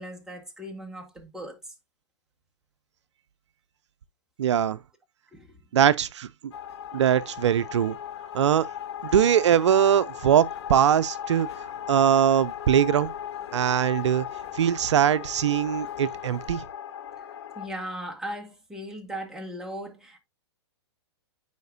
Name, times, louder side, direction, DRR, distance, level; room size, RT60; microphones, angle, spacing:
voice 1, 0.0-1.6 5.3-5.6 17.2-17.3 17.6-20.2, equal, 5° right, 1.7 m, -38 dB
voice 2, 4.4-4.8 5.7-6.3 6.9-8.0 8.3-8.7 9.0-11.5 11.9-13.1 13.5-14.3 14.5-16.6, right 9 dB, 80° right, 0.4 m, -21 dB
sound 1, 6.5-17.7, left 9 dB, 65° left, 1.5 m, -37 dB
9.2 x 5.0 x 2.6 m
hypercardioid pair, 125°, 15 cm